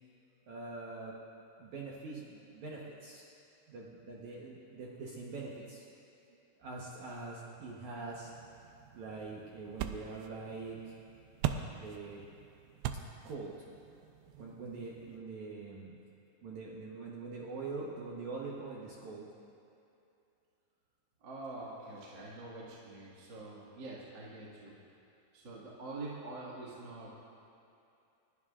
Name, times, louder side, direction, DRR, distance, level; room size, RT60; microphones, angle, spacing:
voice 1, 0.5-1.2 1.6-3.3 3.7-5.9 6.6-8.3 8.9-11.0 11.8-12.2 13.2-13.5 14.3-16.0 16.4-19.3, right 3 dB, 70° right, -4 dB, 1.9 m, -43 dB
sound 1, 8.1-15.2, right 10 dB, 90° right, 2.7 m, -42 dB
voice 2, 21.2-24.8 25.3-27.2, right 2 dB, 40° right, -6 dB, 1.7 m, -45 dB
29.5 x 11.0 x 2.4 m, 2.7 s
omnidirectional pair, 4.6 m